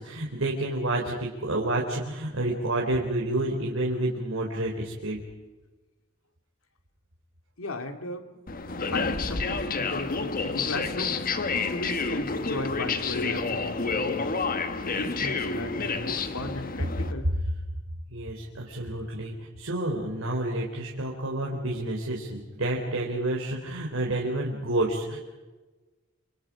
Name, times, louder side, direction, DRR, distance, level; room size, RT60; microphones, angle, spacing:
voice 1, 0.0-5.2 18.1-25.2, right 1 dB, 75° right, -2 dB, 3.8 m, -29 dB
voice 2, 7.6-14.3 14.9-17.3, left 2 dB, 85° left, 7 dB, 2.3 m, -36 dB
sound 1, 8.5-17.1, left 4 dB, 45° left, 1.4 m, -29 dB
28.0 x 27.0 x 5.0 m, 1.2 s
head